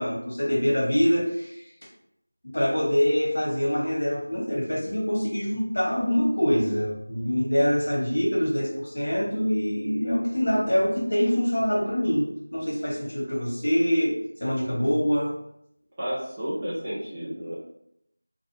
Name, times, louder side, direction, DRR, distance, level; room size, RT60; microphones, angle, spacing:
voice 1, 0.0-1.7 2.5-15.3, equal, 55° left, -3 dB, 0.9 m, -25 dB
voice 2, 16.0-17.5, equal, 15° right, -10 dB, 0.4 m, -31 dB
2.3 x 2.0 x 3.1 m, 0.75 s
figure-of-eight pair, 175°, 0 cm